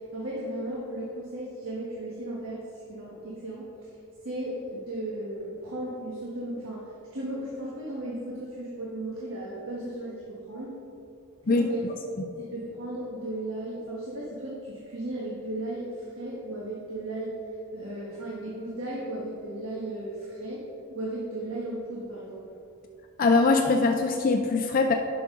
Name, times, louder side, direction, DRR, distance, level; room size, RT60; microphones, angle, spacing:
voice 1, 0.1-2.6 2.9-3.9 4.2-6.9 7.1-10.7 11.5-11.9 12.4-17.3 17.7-20.6 20.9-22.5, right 1 dB, 75° right, -5 dB, 1.3 m, -35 dB
voice 2, 23.2-24.9, left 3 dB, 40° left, 4 dB, 0.4 m, -22 dB
10.5 x 6.0 x 3.7 m, 2.7 s
head